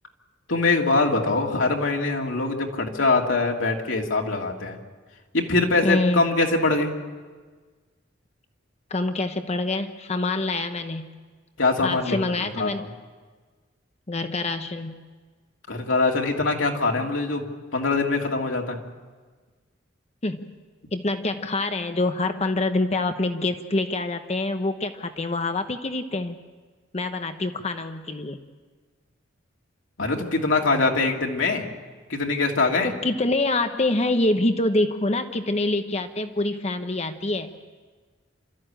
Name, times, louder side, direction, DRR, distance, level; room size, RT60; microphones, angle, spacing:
voice 1, 0.5-4.8 5.3-6.9 11.6-12.7 15.7-17.5 17.7-18.8 30.0-31.7 32.1-32.9, left 3 dB, 90° left, 0 dB, 2.8 m, -23 dB
voice 2, 5.8-6.2 8.9-11.1 11.8-12.9 14.1-15.0 20.2-20.5 20.9-26.4 26.9-28.4 32.8-37.5, left 2 dB, 35° left, 7 dB, 1.0 m, -26 dB
28.5 x 14.0 x 9.0 m, 1.4 s
head